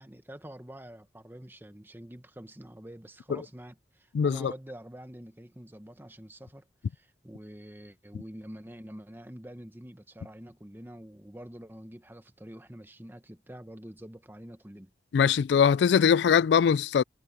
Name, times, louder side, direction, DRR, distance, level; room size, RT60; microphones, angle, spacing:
voice 1, 0.0-14.9, equal, 10° right, 1.2 m, -46 dB
voice 2, 4.1-4.5 15.1-17.0, left 7 dB, 75° left, 0.3 m, -22 dB
head